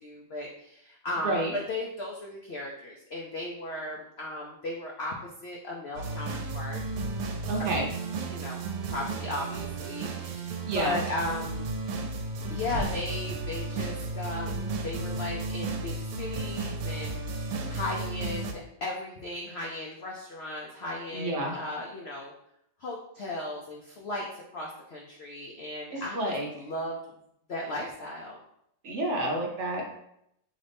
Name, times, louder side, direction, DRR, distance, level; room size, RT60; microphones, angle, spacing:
voice 1, 0.0-6.8 7.6-7.7 8.3-8.6 8.9-11.7 12.5-17.2 17.7-22.3 22.8-27.1 27.5-28.4, left 2 dB, 90° left, -1 dB, 0.5 m, -36 dB
voice 2, 1.2-1.6 7.5-7.9 10.6-11.0 21.1-21.5 25.9-26.5 28.8-29.8, right 1 dB, 55° right, 0 dB, 0.8 m, -29 dB
sound 1, 5.9-18.5, right 3 dB, 85° right, 1.2 m, -34 dB
sound 2, 12.2-14.6 14.9-15.2, left 1 dB, 60° left, 2.0 m, -42 dB
3.9 x 3.1 x 3.4 m, 0.75 s
omnidirectional pair, 1.9 m